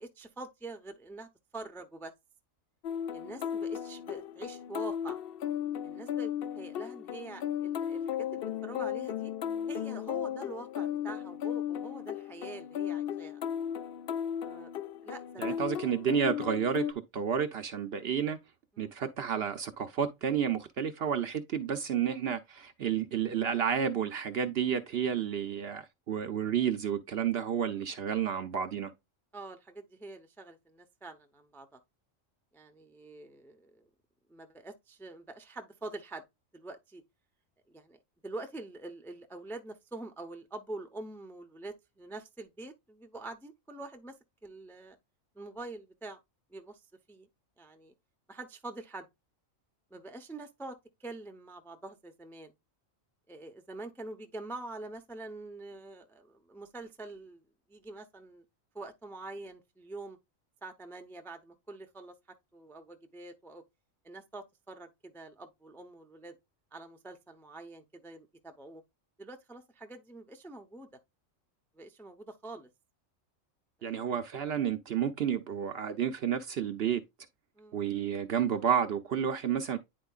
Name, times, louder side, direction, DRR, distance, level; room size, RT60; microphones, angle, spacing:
voice 1, 0.0-2.1 3.1-5.2 5.8-9.3 9.7-13.4 14.4-14.7 15.0-15.6 18.7-18.9 27.6-27.8 29.3-31.8 32.5-33.8 34.3-36.2 36.5-37.0 37.7-44.1 44.4-45.0 45.3-46.2 46.5-46.8 47.1-47.3 47.6-47.9 48.3-49.1 49.9-52.5 53.3-57.4 57.7-58.4 58.7-60.2 60.6-62.1 62.5-63.6 64.0-66.4 66.7-68.8 69.2-70.9 71.7-72.7 73.8-74.1 77.6-77.9, right 2 dB, ahead, 0.5 m, -45 dB
sound 1, 2.8-16.9, left 9 dB, 65° left, 0.6 m, -35 dB
voice 2, 15.4-16.9 17.1-18.4 18.8-28.9 73.8-77.0 77.7-79.8, right 8 dB, 60° right, 0.8 m, -31 dB
9.5 x 4.5 x 2.3 m
omnidirectional pair, 1.4 m